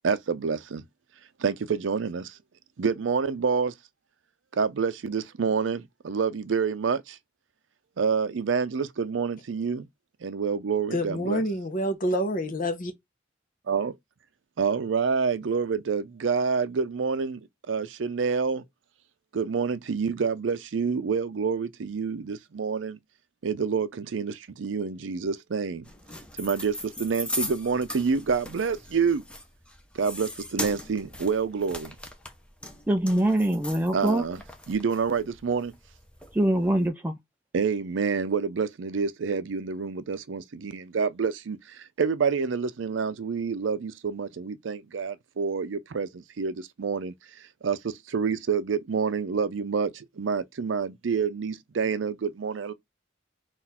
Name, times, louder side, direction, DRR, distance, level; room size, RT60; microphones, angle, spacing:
voice 1, 0.0-0.8 1.4-2.2 2.8-3.7 4.6-7.0 8.0-9.8 10.2-11.4 13.7-13.9 14.6-17.4 17.7-18.6 19.3-23.0 23.4-24.3 24.6-25.8 26.4-26.7 27.0-29.2 30.0-31.9 33.9-34.4 34.7-35.7 37.5-41.6 42.0-46.1 46.4-46.5 46.8-47.1 47.6-47.8 48.1-49.9 50.2-52.7, right 5 dB, 80° right, 0.5 m, -27 dB
voice 2, 10.9-12.9, equal, 45° left, 0.8 m, -27 dB
sound 1, 25.8-36.9, left 1 dB, 5° left, 0.7 m, -39 dB
voice 3, 32.9-34.2 36.3-37.2, right 1 dB, 10° right, 0.3 m, -23 dB
4.0 x 2.5 x 4.2 m
head